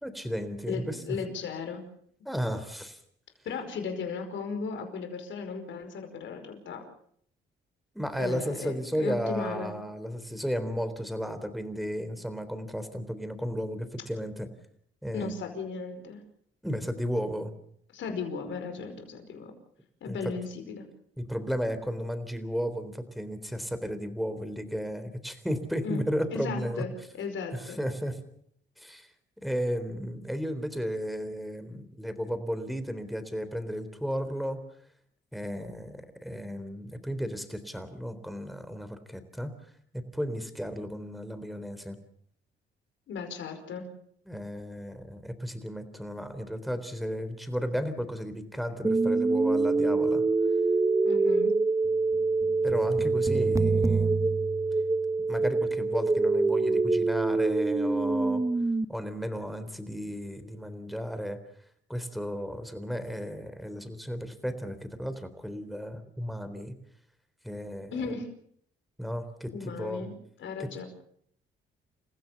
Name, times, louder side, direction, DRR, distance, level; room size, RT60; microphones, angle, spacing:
voice 1, 0.0-1.2 2.3-3.0 7.9-14.5 15.0-15.3 16.6-17.5 20.1-20.2 21.2-26.8 27.5-28.2 28.8-29.1 29.4-34.6 35.3-39.5 39.9-42.0 44.3-50.2 52.6-54.1 55.3-58.4 58.9-61.4 61.9-66.8 67.4-67.9 69.0-70.1 70.6-70.8, equal, ahead, 10 dB, 3.6 m, -34 dB
voice 2, 0.7-1.8 3.5-6.8 8.2-9.7 15.1-16.2 17.9-19.5 20.0-20.9 25.8-26.0 26.3-26.9 27.1-27.8 43.1-43.9 51.0-51.5 67.9-68.3 69.5-70.9, left 5 dB, 70° left, 6 dB, 5.1 m, -36 dB
sound 1, 48.8-58.8, right 3 dB, 15° right, 1.0 m, -25 dB
29.0 x 15.5 x 7.1 m, 0.65 s
cardioid pair, 90°, 20 cm